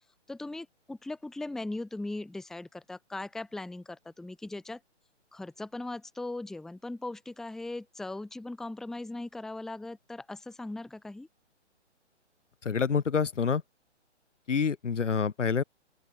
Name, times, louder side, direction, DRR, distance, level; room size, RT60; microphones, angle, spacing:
voice 1, 0.3-4.8 5.3-11.3, left 2 dB, ahead, 0.8 m, -39 dB
voice 2, 12.6-13.6 14.5-15.6, left 6 dB, 90° left, 1.4 m, -27 dB
open air
hypercardioid pair, 145°, 36 cm